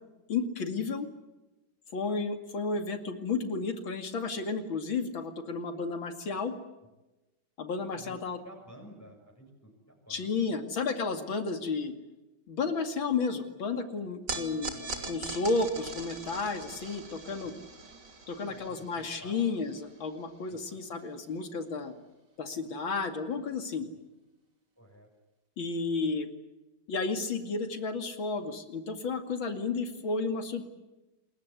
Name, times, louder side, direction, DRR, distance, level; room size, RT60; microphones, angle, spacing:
voice 1, 0.3-1.1 1.9-6.5 7.6-8.4 10.1-11.9 12.5-14.7 15.1-17.5 18.3-21.9 22.4-23.9 25.6-26.3 26.9-30.7, left 4 dB, 80° left, 7 dB, 3.1 m, -32 dB
voice 2, 8.4-10.6 17.4-17.5 18.5-19.3 20.5-20.8 24.8-25.1, right 1 dB, 5° left, 1 dB, 6.5 m, -52 dB
sound 1, 14.3-20.7, right 3 dB, 60° right, 3.6 m, -42 dB
27.5 x 22.0 x 8.3 m, 1.0 s
omnidirectional pair, 2.1 m